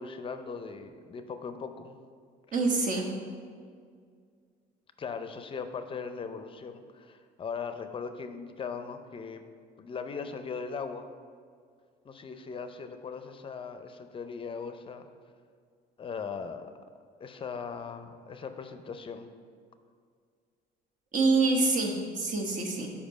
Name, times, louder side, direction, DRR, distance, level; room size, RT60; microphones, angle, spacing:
voice 1, 0.0-2.0 5.0-9.4 9.8-11.1 12.0-15.1 16.0-16.7 17.2-19.3, left 5 dB, 30° left, 8 dB, 0.5 m, -39 dB
voice 2, 2.5-3.1 21.1-22.9, right 3 dB, 50° right, 0 dB, 1.2 m, -26 dB
5.1 x 5.0 x 6.3 m, 2.1 s
cardioid pair, 110°, 17 cm